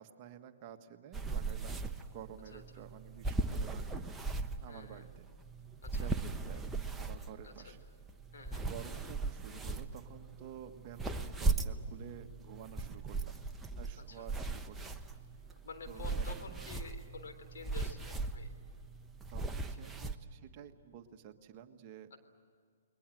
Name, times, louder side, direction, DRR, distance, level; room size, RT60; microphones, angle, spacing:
voice 1, 0.0-4.1 4.6-5.3 5.9-7.8 8.7-13.4 13.8-15.0 15.9-16.3 19.3-22.1, right 9 dB, 35° right, 6 dB, 1.5 m, -51 dB
sound 1, 1.1-20.2, right 3 dB, 10° right, 1.0 m, -39 dB
voice 2, 4.7-5.1 5.8-6.1 7.4-7.7 8.3-8.7 14.0-14.3 15.6-18.5 19.7-19.9 22.1-22.2, left 4 dB, 70° left, 6 dB, 3.7 m, -50 dB
29.5 x 21.5 x 7.7 m, 2.2 s
hypercardioid pair, 135°, 0 cm